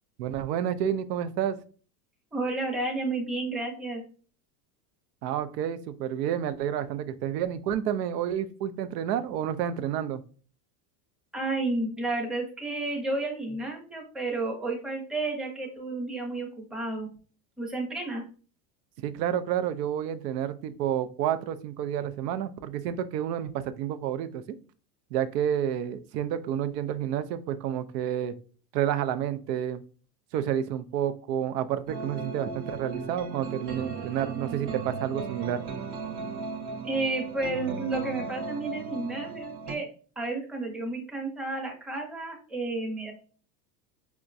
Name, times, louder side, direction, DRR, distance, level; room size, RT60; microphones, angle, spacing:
voice 1, 0.2-1.6 5.2-10.2 19.0-24.4 25.1-28.3 28.7-29.8 30.3-35.6, right 10 dB, 85° right, 12 dB, 0.6 m, -30 dB
voice 2, 2.3-4.0 11.3-17.1 17.6-18.2 36.8-39.9 40.2-43.1, right 2 dB, ahead, -1 dB, 0.6 m, -31 dB
sound 1, 31.9-39.8, right 4 dB, 40° right, 0.7 m, -36 dB
4.7 x 2.2 x 2.5 m, 0.40 s
supercardioid pair, 115°, 48 cm